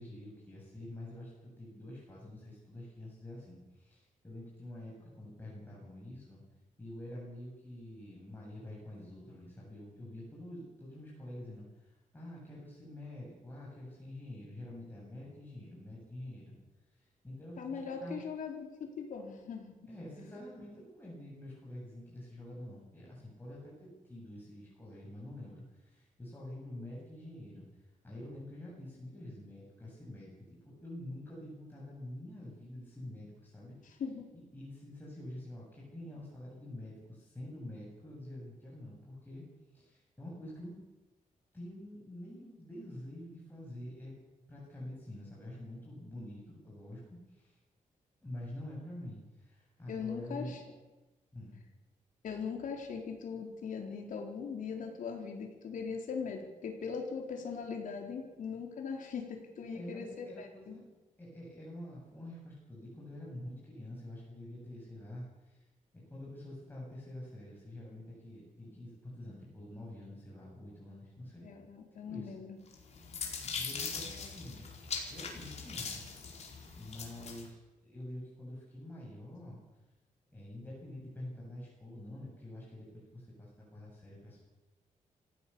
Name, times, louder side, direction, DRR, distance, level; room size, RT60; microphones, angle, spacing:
voice 1, 0.0-6.4 6.8-16.6 16.9-18.1 19.9-27.6 28.0-34.0 34.3-39.4 39.7-40.7 41.5-44.1 44.5-47.0 47.3-47.6 48.2-50.5 51.3-51.6 59.6-60.8 61.2-65.7 65.9-71.5 72.1-72.3 73.4-74.6 75.1-76.1 76.4-79.6 80.3-84.4, left 1 dB, 15° left, -5 dB, 7.8 m, -47 dB
voice 2, 17.6-19.9 34.0-34.3 49.9-50.6 52.2-60.8 71.4-72.6, left 6 dB, 75° left, 2 dB, 4.4 m, -40 dB
sound 1, 72.7-77.5, left 5 dB, 55° left, 4.7 m, -41 dB
27.0 x 15.5 x 7.2 m, 1.1 s
wide cardioid pair, 130°, 14 cm